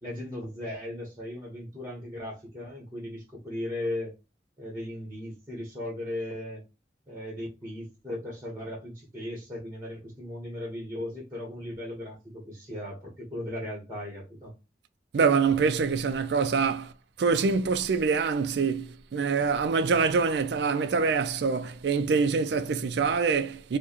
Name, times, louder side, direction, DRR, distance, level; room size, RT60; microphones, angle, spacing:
voice 1, 0.0-4.1 4.6-6.6 7.1-14.5, left 1 dB, 15° right, 1.2 m, -37 dB
voice 2, 15.1-16.9 17.2-23.8, right 5 dB, 70° right, 0.4 m, -25 dB
4.6 x 2.2 x 2.9 m
head